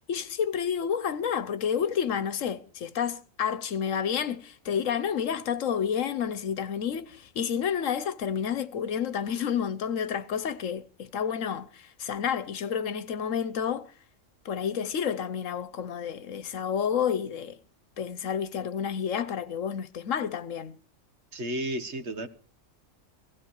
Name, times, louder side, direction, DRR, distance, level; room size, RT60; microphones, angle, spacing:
voice 1, 0.1-13.9 14.4-17.6 18.0-20.8, left 8 dB, 80° left, 1.3 m, -30 dB
voice 2, 21.3-22.3, right 1 dB, 60° right, 1.7 m, -32 dB
17.0 x 15.5 x 4.8 m
omnidirectional pair, 1.3 m